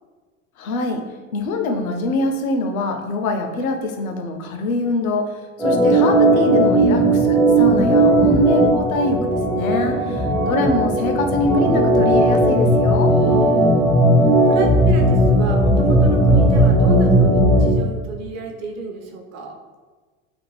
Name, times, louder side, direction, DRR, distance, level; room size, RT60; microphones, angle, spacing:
voice 1, 0.6-1.0 1.3-5.3 5.6-10.2 10.5-13.1, left 2 dB, 85° left, 4 dB, 0.5 m, -23 dB
Organ, 5.6-17.8, right 1 dB, ahead, 0.4 m, -16 dB
voice 2, 9.8-10.5 13.1-14.0 14.5-19.6, right 3 dB, 40° right, 2 dB, 0.6 m, -30 dB
2.5 x 2.3 x 3.1 m, 1.4 s
hypercardioid pair, 80°, 41 cm